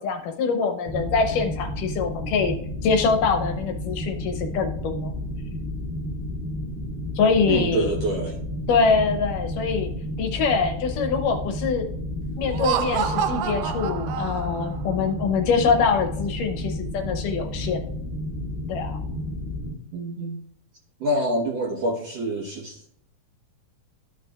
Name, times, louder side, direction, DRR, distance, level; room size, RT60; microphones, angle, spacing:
voice 1, 0.0-2.6 2.8-5.1 7.2-7.9 8.7-9.9 10.2-11.9 12.4-17.8 18.7-19.0, left 5 dB, 75° left, 5 dB, 2.2 m, -24 dB
sound 1, 0.8-19.7, left 1 dB, 5° right, 2.6 m, -31 dB
voice 2, 7.5-8.6 19.9-20.4 21.0-22.9, right 1 dB, 60° right, -2 dB, 1.7 m, -27 dB
Laughter, 12.4-14.8, right 9 dB, 80° right, 2.0 m, -28 dB
13.5 x 6.5 x 2.3 m, 0.67 s
omnidirectional pair, 4.2 m